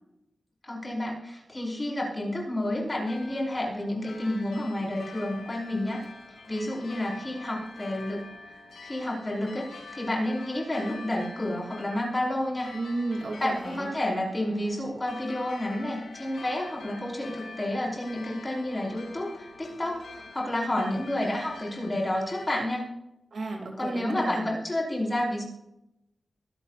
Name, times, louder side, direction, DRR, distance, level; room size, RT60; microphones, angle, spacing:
voice 1, 0.6-6.0 6.5-12.7 13.4-22.9 23.8-25.4, left 1 dB, 25° left, -2 dB, 5.1 m, -30 dB
sound 1, 2.8-22.7, left 3 dB, 85° left, 3.0 m, -46 dB
voice 2, 12.7-13.9 23.3-24.6, right 2 dB, 70° right, 2 dB, 2.8 m, -33 dB
23.5 x 11.5 x 2.6 m, 0.87 s
wide cardioid pair, 110°, 0 cm